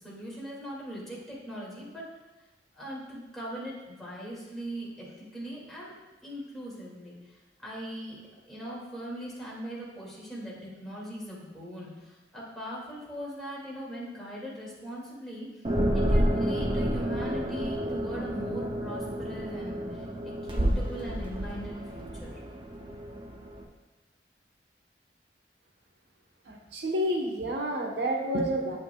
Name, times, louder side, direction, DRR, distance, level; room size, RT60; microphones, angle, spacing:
voice 1, 0.0-2.0 2.7-5.9 6.2-8.2 8.5-15.5 15.9-22.4, equal, ahead, -7 dB, 2.3 m, -40 dB
sound 1, 15.6-23.6, equal, 30° right, 0.7 m, -30 dB
voice 2, 26.5-28.8, equal, 75° right, 1 dB, 1.1 m, -29 dB
8.6 x 7.9 x 2.3 m, 1.2 s
head